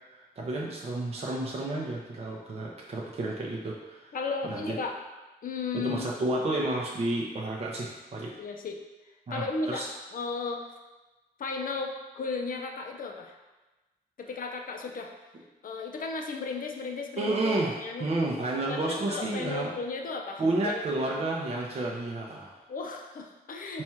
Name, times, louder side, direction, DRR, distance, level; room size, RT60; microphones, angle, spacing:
voice 1, 0.1-4.1 4.4-4.7 5.7-8.3 9.3-9.9 17.2-19.7 20.4-22.6 23.7-23.8, right 2 dB, 40° right, -3 dB, 0.6 m, -31 dB
voice 2, 4.1-4.9 5.4-6.1 8.4-8.8 9.3-9.8 10.1-10.7 11.4-13.3 14.2-15.1 15.6-18.1 18.7-20.8 22.7-23.8, left 4 dB, 55° left, 2 dB, 0.5 m, -35 dB
4.2 x 2.3 x 4.3 m, 1.1 s
wide cardioid pair, 140°, 17 cm